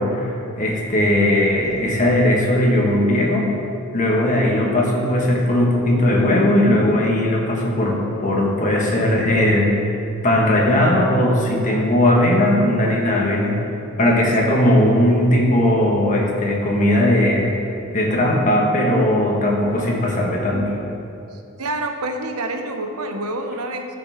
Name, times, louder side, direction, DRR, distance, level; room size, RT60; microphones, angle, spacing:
voice 1, 0.0-3.5 3.9-10.0 10.2-13.5 14.0-17.5 17.9-20.8, left 1 dB, 35° left, -2 dB, 1.5 m, -18 dB
voice 2, 21.3-23.9, right 2 dB, 90° right, 5 dB, 0.9 m, -27 dB
13.0 x 6.0 x 3.6 m, 2.6 s
head